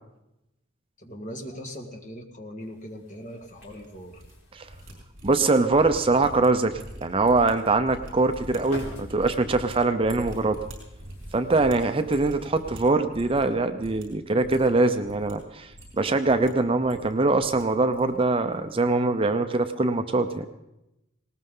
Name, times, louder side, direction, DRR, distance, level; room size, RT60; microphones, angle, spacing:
voice 1, 1.0-4.2, equal, 35° left, 2 dB, 1.7 m, -40 dB
sound 1, 2.6-13.7, equal, 55° left, 4.3 m, -50 dB
sound 2, 3.4-4.3 4.6-13.5 13.8-14.0 14.4-15.3 15.7-16.5 16.8-17.6 17.9-18.2 18.5-18.7, equal, 60° right, 5.4 m, -43 dB
voice 2, 5.2-10.6 11.3-15.7 16.0-20.5, right 3 dB, 25° right, 8 dB, 0.6 m, -23 dB
19.5 x 19.0 x 3.8 m, 0.91 s
head